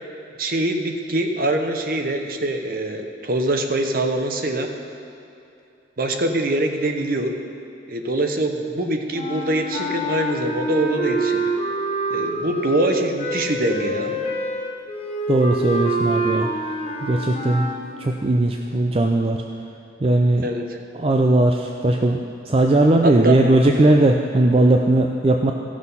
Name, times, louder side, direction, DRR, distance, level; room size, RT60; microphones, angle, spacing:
voice 1, 0.4-4.7 6.0-7.3 7.9-11.5 12.1-14.2 20.4-20.6 23.0-23.4, right 1 dB, 50° right, 5 dB, 0.9 m, -23 dB
sound 1, 9.1-17.8, right 1 dB, 35° left, 1.1 m, -26 dB
voice 2, 15.3-16.7 17.0-17.7 18.0-19.4 20.0-20.5 20.9-25.5, right 2 dB, 30° right, 2 dB, 0.4 m, -18 dB
15.0 x 6.2 x 5.5 m, 2.8 s
head